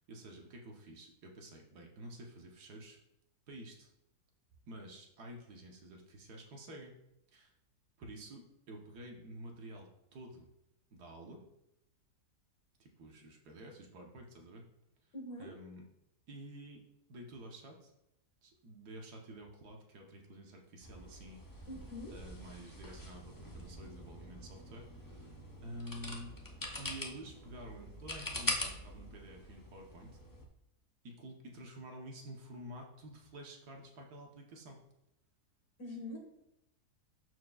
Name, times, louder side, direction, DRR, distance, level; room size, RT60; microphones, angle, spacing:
voice 1, 0.0-3.0 3.5-3.9 4.7-6.9 7.3-7.5 8.0-10.5 10.9-11.4 12.8-14.6 15.4-15.8 16.3-16.8 17.1-17.9 18.4-21.7 22.1-25.3 25.6-26.4 26.8-30.2 31.0-34.8, right 1 dB, 75° right, 1 dB, 1.6 m, -50 dB
voice 2, 15.1-15.5 21.7-22.1 35.8-36.2, left 1 dB, 65° left, -1 dB, 2.3 m, -44 dB
sound 1, 20.8-30.5, left 2 dB, 20° left, 0.5 m, -44 dB
12.5 x 4.6 x 2.4 m, 0.84 s
omnidirectional pair, 1.7 m